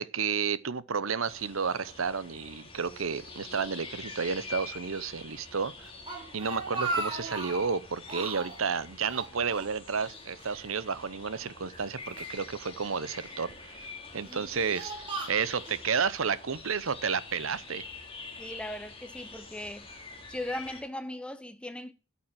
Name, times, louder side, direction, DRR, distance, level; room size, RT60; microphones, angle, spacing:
voice 1, 0.0-5.9 6.3-14.9 15.3-17.8, right 6 dB, 75° right, 0.8 m, -31 dB
sound 1, 1.2-20.8, left 3 dB, 25° left, 2.6 m, -46 dB
Speech, 6.0-7.7 8.1-8.6 9.0-10.1 10.4-10.5 11.4-12.4 13.1-13.5 14.1-15.8, right 2 dB, 25° right, 2.8 m, -37 dB
voice 2, 18.4-20.0 20.3-21.9, left 1 dB, 5° left, 0.9 m, -38 dB
8.9 x 7.2 x 7.5 m
head